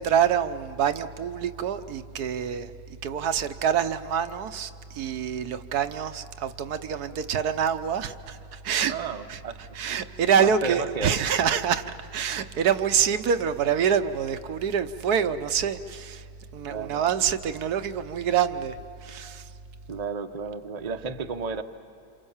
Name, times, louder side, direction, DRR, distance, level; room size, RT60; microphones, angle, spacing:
voice 1, 0.0-2.7 3.0-9.0 9.3-9.4 9.7-11.8 12.1-16.2 16.5-18.8 19.0-19.4, right 8 dB, 70° right, 10 dB, 1.3 m, -26 dB
voice 2, 8.9-9.6 10.4-11.2 16.7-17.0 19.9-21.6, right 5 dB, 30° right, 7 dB, 0.9 m, -32 dB
28.0 x 28.0 x 7.2 m, 2.7 s
omnidirectional pair, 1.8 m